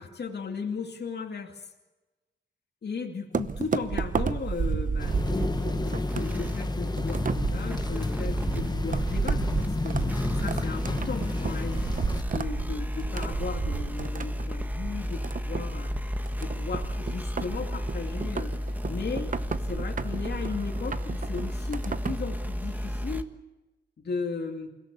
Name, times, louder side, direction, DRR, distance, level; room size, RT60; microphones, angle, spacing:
voice 1, 0.0-1.7 2.8-10.0 10.4-11.9 12.3-16.1 16.4-19.3 19.6-23.3 24.0-24.7, left 5 dB, 60° left, 1 dB, 2.5 m, -36 dB
sound 1, 3.3-22.3, right 5 dB, 45° right, 0.9 m, -33 dB
sound 2, 5.0-12.2, left 3 dB, 20° left, 0.9 m, -32 dB
sound 3, 5.1-23.2, equal, 10° right, 1.5 m, -32 dB
29.0 x 17.0 x 8.4 m, 1.1 s
wide cardioid pair, 165°, 19 cm